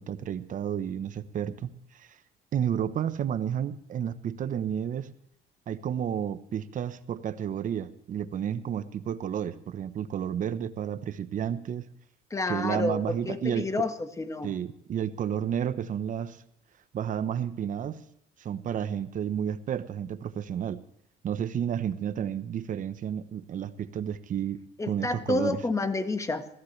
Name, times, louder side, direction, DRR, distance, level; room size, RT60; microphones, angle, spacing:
voice 1, 0.0-2.2 2.5-5.1 5.7-11.9 12.5-13.8 14.4-16.4 16.9-18.0 18.4-20.8 21.2-24.6 24.9-25.6, right 9 dB, 50° right, 12 dB, 1.0 m, -31 dB
voice 2, 12.3-14.5 24.8-26.5, left 2 dB, 20° left, 8 dB, 1.5 m, -29 dB
21.5 x 15.0 x 3.3 m, 0.69 s
cardioid pair, 110°, 17 cm